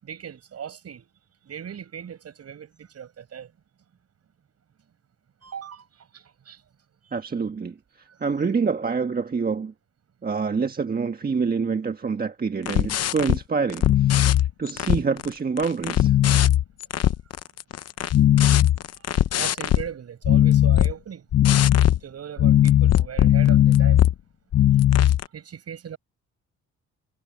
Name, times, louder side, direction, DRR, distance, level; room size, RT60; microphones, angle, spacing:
voice 1, 0.0-1.1 1.4-3.5 5.4-5.9 6.1-6.6 19.3-21.3 22.0-24.0 25.3-26.0, right 8 dB, 55° right, 7.9 m, -38 dB
voice 2, 7.1-7.8 8.2-9.7 10.2-16.2, right 5 dB, 30° right, 1.4 m, -26 dB
sound 1, 12.7-13.4 13.7-15.3 15.6-19.9 20.2-20.9 21.3-22.0 22.4-24.1 24.5-25.2, left 12 dB, 55° left, 0.8 m, -18 dB
cardioid pair, 90°, 30 cm